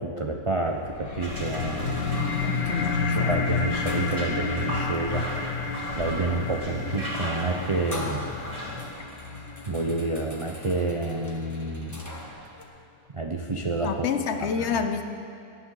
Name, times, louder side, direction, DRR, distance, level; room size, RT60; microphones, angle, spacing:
voice 1, 0.0-2.3 2.8-5.6 6.0-8.3 9.7-12.1 13.1-14.1 14.4-14.8, right 3 dB, 45° right, 1 dB, 0.4 m, -29 dB
sound 1, 0.7-12.6, left 1 dB, 15° left, 1.0 m, -44 dB
sound 2, 0.9-11.9, left 5 dB, 85° left, 1.5 m, -31 dB
sound 3, 1.2-8.8, equal, 20° right, 2.8 m, -37 dB
voice 2, 2.2-3.5 13.8-15.0, left 6 dB, 55° left, 7 dB, 0.9 m, -29 dB
18.5 x 11.5 x 3.9 m, 2.6 s
omnidirectional pair, 1.7 m